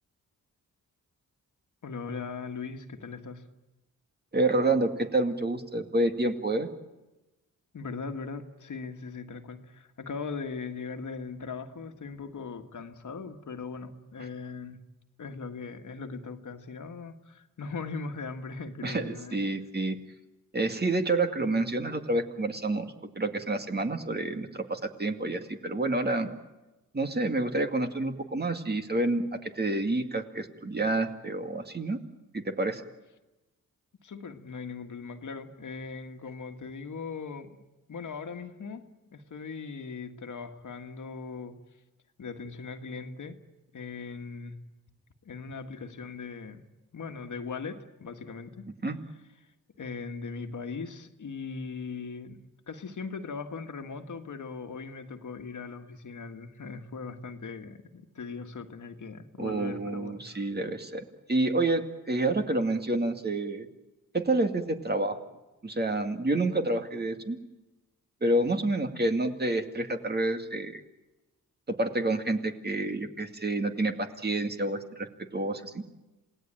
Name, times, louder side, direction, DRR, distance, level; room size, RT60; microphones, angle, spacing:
voice 1, 1.8-3.5 7.7-14.8 15.2-19.4 34.0-37.6 37.9-38.8 39.1-41.6 42.2-43.4 43.7-44.5 45.3-46.6 46.9-48.7 49.8-52.4 52.7-60.2, left 5 dB, 60° left, 6 dB, 1.9 m, -39 dB
voice 2, 4.3-6.7 18.8-20.0 20.5-26.3 26.9-32.0 32.3-32.8 48.8-49.0 59.4-63.7 64.1-65.2 65.6-67.4 68.2-70.8 71.7-75.8, right 2 dB, 30° right, 6 dB, 2.3 m, -28 dB
27.5 x 18.0 x 9.0 m, 1.1 s
cardioid pair, 70°, 34 cm